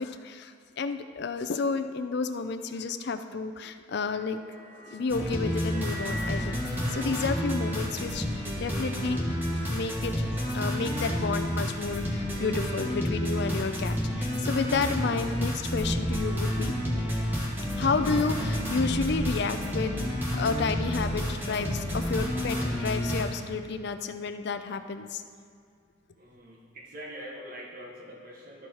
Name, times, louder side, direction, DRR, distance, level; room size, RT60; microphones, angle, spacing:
voice 1, 0.0-4.4 4.9-9.2 9.5-16.7 17.8-25.2, left 4 dB, 55° left, 9 dB, 0.4 m, -31 dB
sound 1, 4.0-10.4, left 1 dB, 30° right, 1.6 m, -46 dB
sound 2, 5.1-23.2, equal, 10° right, 1.4 m, -30 dB
Acoustic guitar / Strum, 18.0-24.0, left 1 dB, 90° left, 1.2 m, -46 dB
voice 2, 26.1-28.7, equal, 45° right, -2 dB, 0.9 m, -44 dB
12.5 x 4.7 x 4.3 m, 2.3 s
head